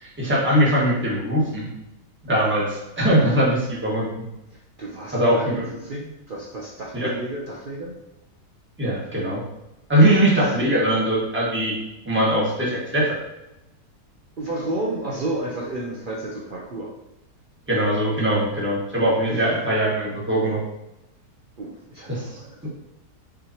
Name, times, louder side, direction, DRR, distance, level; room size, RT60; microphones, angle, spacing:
voice 1, 0.0-1.6 2.2-4.1 5.1-5.6 6.9-7.1 8.8-9.4 9.9-11.7 12.0-13.2 17.7-20.6 22.1-22.4, right 1 dB, 10° right, -6 dB, 1.2 m, -21 dB
voice 2, 4.5-8.0 9.9-10.3 14.4-16.9 19.2-19.6 21.6-22.7, right 2 dB, 80° right, -3 dB, 0.4 m, -32 dB
5.8 x 3.2 x 2.8 m, 0.93 s
omnidirectional pair, 1.8 m